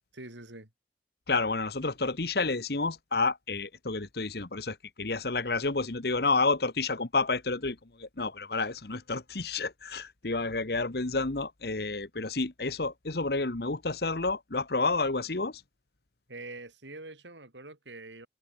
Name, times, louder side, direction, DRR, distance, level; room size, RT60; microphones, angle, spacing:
voice 1, 0.1-0.7 16.3-18.3, right 2 dB, 80° right, 5.4 m, -45 dB
voice 2, 1.3-15.6, left 3 dB, 60° left, 1.3 m, -30 dB
open air
head